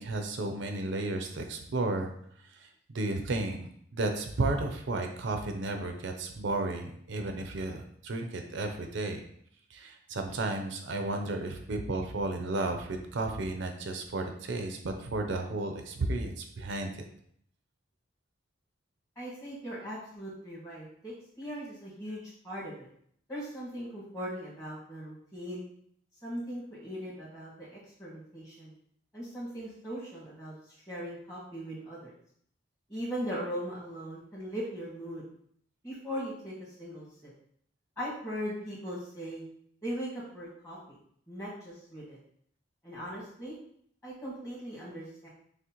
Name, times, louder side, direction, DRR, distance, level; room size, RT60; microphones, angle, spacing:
voice 1, 0.0-2.1 2.5-9.2 9.7-16.9, right 2 dB, 70° right, 4 dB, 0.5 m, -33 dB
voice 2, 19.2-22.9 23.3-25.6 26.2-28.7 29.1-32.1 32.9-35.2 35.8-37.3 38.0-39.4 39.8-41.0 41.3-42.2 42.8-43.5 44.0-45.3, equal, 15° left, -8 dB, 1.5 m, -39 dB
6.1 x 2.1 x 2.9 m, 0.65 s
head